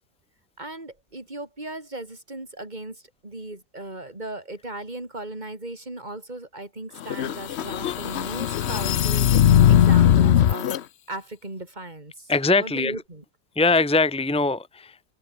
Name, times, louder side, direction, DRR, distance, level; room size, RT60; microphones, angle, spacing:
voice 1, 0.6-9.3 9.7-10.7 11.1-12.3 12.6-13.2, right 2 dB, 25° right, 4.7 m, -37 dB
sound 1, 7.0-10.8, left 10 dB, 65° left, 0.6 m, -19 dB
voice 2, 12.3-13.0 13.6-15.0, left 3 dB, 5° left, 1.9 m, -22 dB
omnidirectional pair, 1.9 m